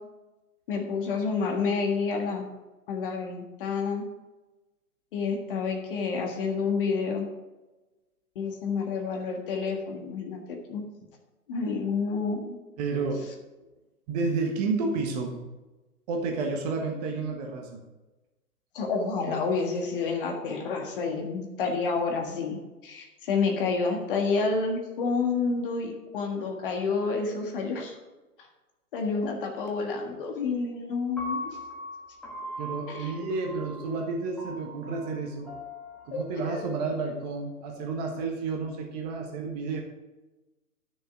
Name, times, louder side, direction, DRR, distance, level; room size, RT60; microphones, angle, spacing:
voice 1, 0.7-2.5 2.9-4.0 5.1-7.3 8.3-10.4 10.7-10.9 11.5-12.6 18.7-22.6 22.8-27.9 28.4-28.5 28.9-31.4 32.9-33.1 36.1-36.7, left 4 dB, 35° left, 3 dB, 1.6 m, -29 dB
voice 2, 12.8-13.3 14.1-15.4 16.1-17.8 32.6-35.5 36.0-39.8, right 4 dB, 25° right, 1 dB, 1.4 m, -31 dB
Piano, 31.2-37.3, left 1 dB, 5° left, 1.5 m, -40 dB
12.0 x 6.8 x 4.8 m, 1.1 s
figure-of-eight pair, 135°, 47 cm